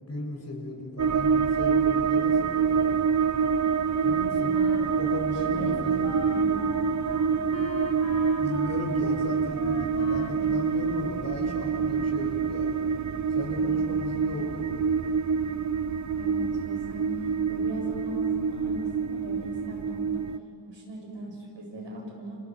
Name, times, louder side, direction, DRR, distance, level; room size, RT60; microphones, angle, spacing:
voice 1, 0.0-2.9 4.0-4.6 4.9-6.2 8.4-12.7 13.3-14.8, left 1 dB, 35° left, 1 dB, 6.1 m, -36 dB
sound 1, 1.0-20.4, right 6 dB, 40° right, 0.7 m, -26 dB
Wind instrument woodwind instrument, 4.0-11.5, left 3 dB, 90° left, 2.3 m, -42 dB
voice 2, 4.8-6.7 13.5-13.9 16.1-20.2 20.7-22.4, right 1 dB, 75° right, -1 dB, 7.8 m, -39 dB
30.0 x 28.0 x 6.0 m, 2.5 s
cardioid pair, 80°, 44 cm